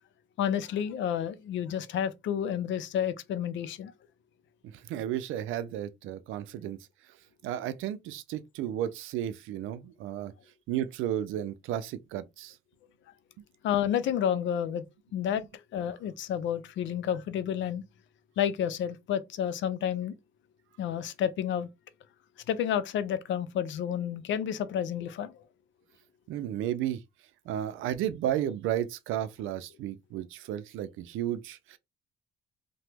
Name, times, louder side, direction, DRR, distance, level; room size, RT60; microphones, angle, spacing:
voice 1, 0.4-3.9 13.6-14.8 15.1-15.4 15.7-17.8 18.4-20.1 20.8-21.7 22.5-25.3, left 9 dB, 70° left, 0.5 m, -30 dB
voice 2, 4.9-6.8 7.4-10.3 10.7-12.5 26.3-27.0 27.5-31.8, right 11 dB, 85° right, 0.4 m, -33 dB
2.9 x 2.2 x 3.3 m
cardioid pair, 90°, 20 cm